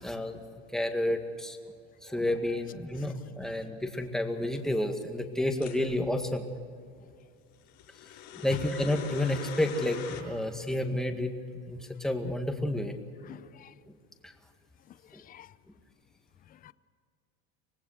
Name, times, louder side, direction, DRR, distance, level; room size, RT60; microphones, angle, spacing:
voice 1, 0.0-0.4 0.7-1.6 2.0-6.5 8.4-10.0 10.2-11.3 11.7-12.9, left 1 dB, ahead, 4 dB, 1.9 m, -30 dB
sound 1, 5.6-5.8 7.7-10.2, left 8 dB, 80° left, 6.3 m, -41 dB
voice 2, 13.2-13.7 14.9-15.5 16.5-16.7, left 11 dB, 25° left, 16 dB, 0.6 m, -46 dB
25.0 x 19.0 x 6.6 m, 2.3 s
supercardioid pair, 135°, 31 cm